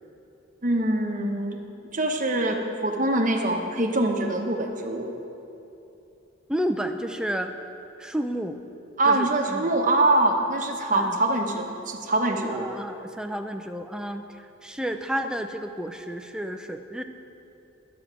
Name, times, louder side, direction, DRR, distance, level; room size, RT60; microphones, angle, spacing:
voice 1, 0.6-1.6 1.9-5.1 9.0-12.7, right 2 dB, 40° right, 2 dB, 0.9 m, -24 dB
voice 2, 6.5-7.5 8.0-8.6 9.0-9.8 10.9-11.2 12.5-14.2 14.6-17.0, equal, 5° right, 6 dB, 0.4 m, -31 dB
11.0 x 8.6 x 5.9 m, 2.9 s
head